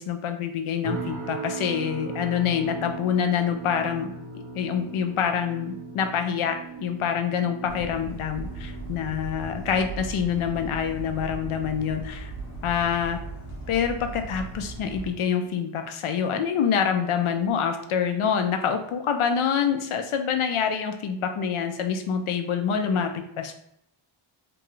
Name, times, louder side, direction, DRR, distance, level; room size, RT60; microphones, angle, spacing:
voice 1, 0.0-4.1 4.5-12.3 12.6-13.2 13.7-23.1 23.4-23.5, left 7 dB, 80° left, 6 dB, 0.5 m, -26 dB
sound 1, 0.8-16.0 16.4-16.8 17.3-17.5, right 4 dB, 90° right, 0.7 m, -40 dB
sound 2, 7.7-15.1, right 2 dB, 35° left, 0.8 m, -38 dB
3.0 x 2.3 x 3.0 m, 0.78 s
wide cardioid pair, 180°, 49 cm